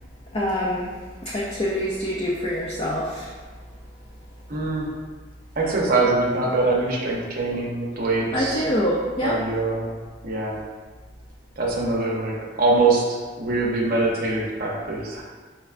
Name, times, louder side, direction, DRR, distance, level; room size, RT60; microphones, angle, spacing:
voice 1, 0.3-0.9 1.2-3.3 8.3-9.4, equal, 30° left, -4 dB, 0.4 m, -25 dB
voice 2, 4.5-4.9 5.6-8.6 9.2-9.9 10.2-10.6 11.6-12.3 12.6-13.0 13.4-15.2, right 3 dB, 50° right, -2 dB, 0.6 m, -23 dB
5.7 x 2.2 x 2.4 m, 1.4 s
head